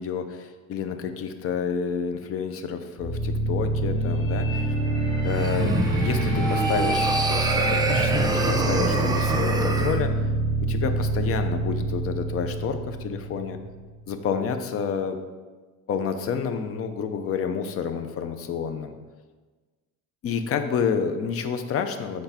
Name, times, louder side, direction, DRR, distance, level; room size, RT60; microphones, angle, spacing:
voice 1, 0.0-4.7 5.2-10.2 10.6-13.6 14.1-15.2 15.9-18.9 20.2-22.2, left 6 dB, 40° left, 7 dB, 0.6 m, -29 dB
sound 1, 3.0-13.9, right 2 dB, 20° left, 1.8 m, -26 dB
sound 2, 5.2-10.0, right 2 dB, 10° right, 0.4 m, -26 dB
8.1 x 3.9 x 5.7 m, 1.3 s
cardioid pair, 155°, 35 cm